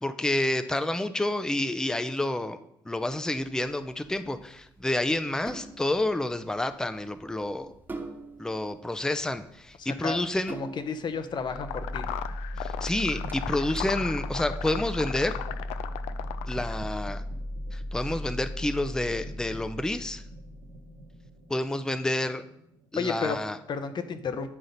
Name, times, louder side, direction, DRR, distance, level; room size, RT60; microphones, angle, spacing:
voice 1, 0.0-2.6 2.9-7.7 8.4-10.6 12.6-15.4 16.5-17.2 17.7-20.2 21.5-22.4 22.9-23.6, left 1 dB, 5° left, 11 dB, 0.4 m, -29 dB
sound 1, 2.9-15.1, right 3 dB, 20° right, 1.1 m, -46 dB
voice 2, 10.5-12.1 23.0-23.4 23.7-24.5, left 5 dB, 45° left, 10 dB, 0.7 m, -32 dB
sound 2, 11.3-23.2, left 1 dB, 75° right, 0.9 m, -37 dB
sound 3, 11.5-16.8, left 12 dB, 65° left, 0.4 m, -36 dB
9.8 x 3.8 x 4.0 m, 0.78 s
hypercardioid pair, 50°, 11 cm